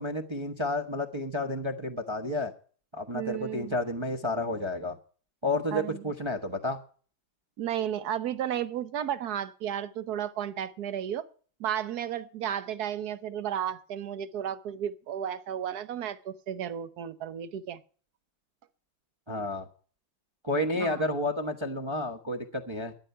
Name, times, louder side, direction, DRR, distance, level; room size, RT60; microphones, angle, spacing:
voice 1, 0.0-2.5 2.9-5.0 5.4-6.8 19.3-19.7 20.4-22.9, left 1 dB, 20° right, 0.8 m, -31 dB
voice 2, 3.1-3.7 5.7-6.0 7.6-11.3 11.6-17.8 20.8-21.0, right 10 dB, 60° right, 1.2 m, -33 dB
13.5 x 10.5 x 5.5 m
omnidirectional pair, 2.3 m